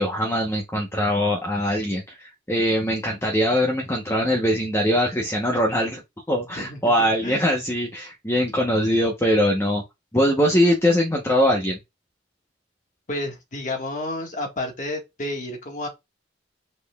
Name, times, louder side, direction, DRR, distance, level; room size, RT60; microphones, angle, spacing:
voice 1, 0.0-6.0 6.3-9.8 10.1-11.8, equal, 15° left, 0.9 m, -22 dB
voice 2, 6.5-7.5 13.1-15.9, left 1 dB, 45° left, 1.6 m, -31 dB
5.4 x 4.2 x 2.3 m
head